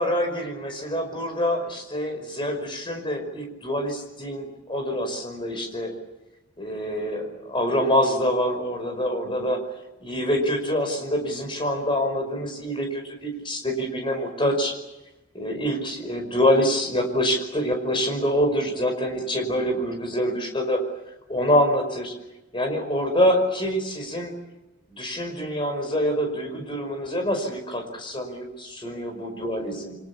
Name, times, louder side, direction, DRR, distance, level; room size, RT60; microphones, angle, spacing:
voice 1, 0.0-5.9 6.6-9.6 10.0-14.7 15.3-20.8 21.3-22.1 22.5-24.3 24.9-30.0, equal, 25° left, 4 dB, 5.5 m, -25 dB
29.0 x 24.5 x 7.2 m, 1.0 s
head